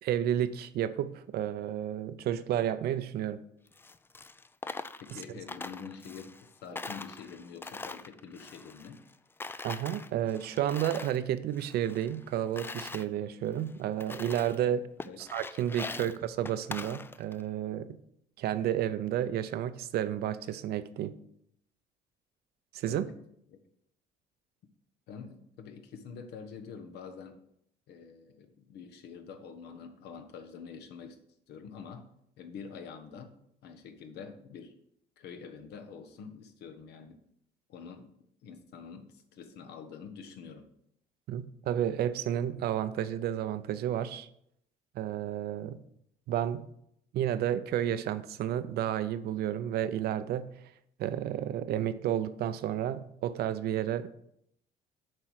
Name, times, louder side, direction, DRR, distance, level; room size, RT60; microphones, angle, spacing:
voice 1, 0.0-3.4 9.6-14.9 15.2-18.0 18.4-21.2 22.7-23.1 41.3-44.3 44.9-45.8 46.3-46.7 47.1-50.5 51.0-54.1, right 11 dB, 70° right, 13 dB, 0.6 m, -31 dB
Coin (dropping), 3.7-6.5 6.8-9.1 9.4-11.2 11.5-13.1 13.6-13.7 14.0-14.6 15.0-17.4, left 3 dB, 15° left, 0.3 m, -42 dB
voice 2, 5.0-9.0 14.6-14.7 15.0-15.2 15.9-16.0 22.9-23.1 23.5-23.6 25.1-27.4 27.9-31.2 31.5-32.1 32.4-33.3 33.6-34.7 35.2-37.2 37.7-38.1 38.4-40.7, left 6 dB, 75° left, 7 dB, 1.2 m, -46 dB
7.6 x 4.7 x 6.4 m, 0.72 s
cardioid pair, 110°, 17 cm